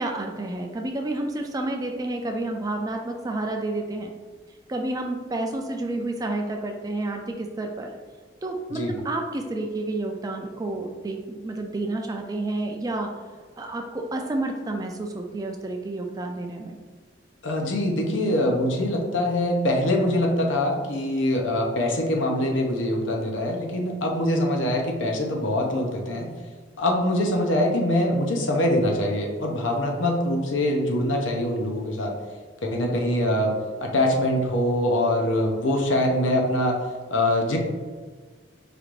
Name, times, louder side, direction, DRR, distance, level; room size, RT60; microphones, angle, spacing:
voice 1, 0.0-4.1 4.7-7.9 8.4-13.1 13.6-16.8, right 2 dB, 20° right, 3 dB, 0.3 m, -30 dB
voice 2, 17.4-26.3 26.8-32.1 32.6-36.8 37.1-37.6, left 1 dB, 85° left, 1 dB, 0.7 m, -23 dB
5.0 x 2.5 x 3.1 m, 1.5 s
head